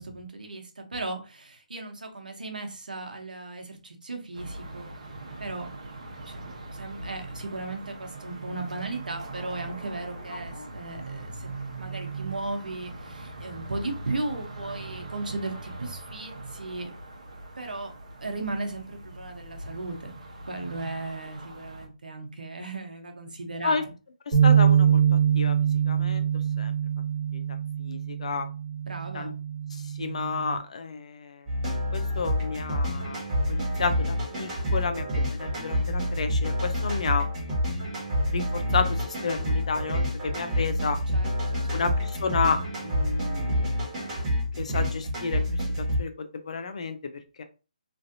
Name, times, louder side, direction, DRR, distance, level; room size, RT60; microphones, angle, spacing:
voice 1, 0.0-4.9 5.4-5.7 6.2-11.5 11.8-16.9 17.6-17.9 18.2-20.1 20.4-23.9 28.9-29.3 41.1-42.0, right 2 dB, 90° right, 4 dB, 0.9 m, -36 dB
sound 1, 4.3-21.9, right 3 dB, 55° right, 0.9 m, -41 dB
voice 2, 24.3-25.0 25.3-25.6 25.9-26.2 26.6-26.7 27.3-27.4 27.8-28.5 29.1-29.3 30.0-31.4 31.9-33.2 33.5-35.0 35.3-37.3 38.3-41.0 41.7-43.7 44.6-45.4 46.0-47.0 47.4-47.5, left 5 dB, 55° left, 8 dB, 0.5 m, -31 dB
sound 2, 24.3-30.6, right 8 dB, 35° right, 1.5 m, -24 dB
sound 3, 31.5-46.0, equal, 15° right, 1.4 m, -28 dB
3.2 x 2.6 x 2.6 m, 0.32 s
hypercardioid pair, 165°, 4 cm